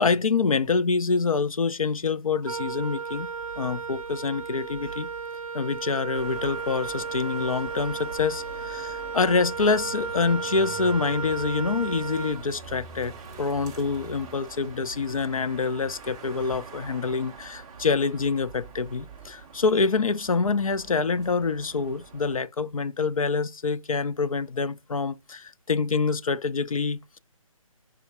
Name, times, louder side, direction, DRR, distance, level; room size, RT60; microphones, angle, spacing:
voice 1, 0.0-3.3 3.6-5.1 5.5-27.2, left 4 dB, 75° left, 0.4 m, -26 dB
Wind instrument woodwind instrument, 2.4-12.9, right 5 dB, 70° right, 0.5 m, -34 dB
sound 1, 6.1-22.4, right 5 dB, 10° right, 0.3 m, -44 dB
4.7 x 3.2 x 3.5 m
figure-of-eight pair, 140°, 18 cm